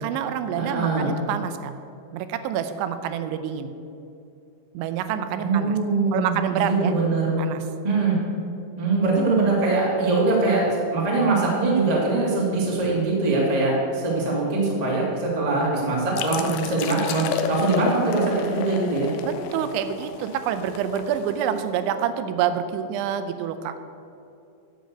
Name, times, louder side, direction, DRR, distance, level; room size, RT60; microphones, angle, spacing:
voice 1, 0.0-1.7 2.1-3.7 4.7-5.8 6.1-6.9 7.4-7.6 19.3-23.8, right 8 dB, 90° right, 9 dB, 3.0 m, -27 dB
voice 2, 0.6-1.1 5.4-7.3 7.8-8.2 8.7-19.1, right 3 dB, 30° right, -4 dB, 0.7 m, -22 dB
sound 1, 16.2-21.7, left 5 dB, 85° left, 2.1 m, -32 dB
10.5 x 6.4 x 8.1 m, 2.7 s
omnidirectional pair, 5.2 m